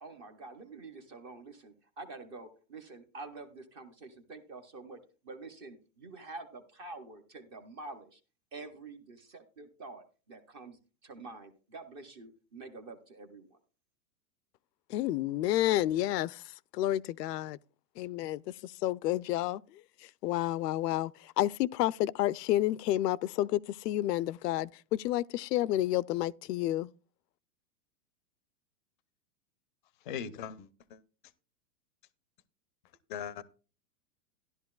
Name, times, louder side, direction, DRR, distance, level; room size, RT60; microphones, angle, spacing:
voice 1, 0.0-5.0 5.2-8.2 8.5-13.6, right 3 dB, 20° right, 0.5 m, -47 dB
voice 2, 14.9-17.6 18.0-26.9, left 14 dB, 85° left, 0.5 m, -30 dB
voice 3, 30.0-31.0 33.1-33.4, left 8 dB, 35° left, 0.5 m, -39 dB
13.5 x 11.0 x 2.3 m
supercardioid pair, 165°, 47 cm